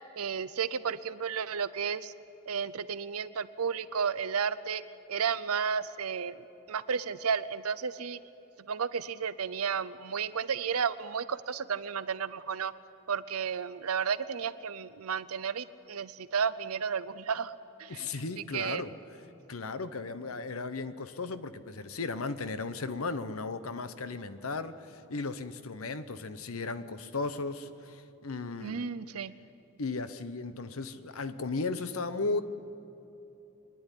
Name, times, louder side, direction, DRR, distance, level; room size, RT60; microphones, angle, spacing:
voice 1, 0.2-2.1 2.5-4.8 5.1-6.4 6.7-8.2 8.7-12.7 13.1-17.5 17.8-18.1 18.5-18.8 28.6-29.3, right 6 dB, 85° right, 14 dB, 0.6 m, -32 dB
voice 2, 17.9-18.9 19.5-28.8 29.8-32.4, left 3 dB, 75° left, 12 dB, 0.9 m, -36 dB
25.0 x 10.5 x 9.9 m, 3.0 s
head